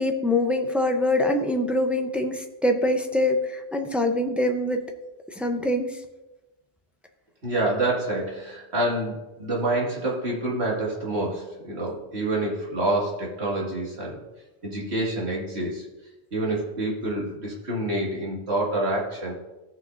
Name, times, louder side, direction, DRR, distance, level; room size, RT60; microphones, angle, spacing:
voice 1, 0.0-4.8 5.3-6.0, left 1 dB, ahead, 4 dB, 0.6 m, -24 dB
voice 2, 7.4-14.2 14.6-15.9 16.3-19.3, right 1 dB, 70° right, -4 dB, 2.4 m, -27 dB
15.0 x 5.9 x 2.6 m, 1.0 s
omnidirectional pair, 1.1 m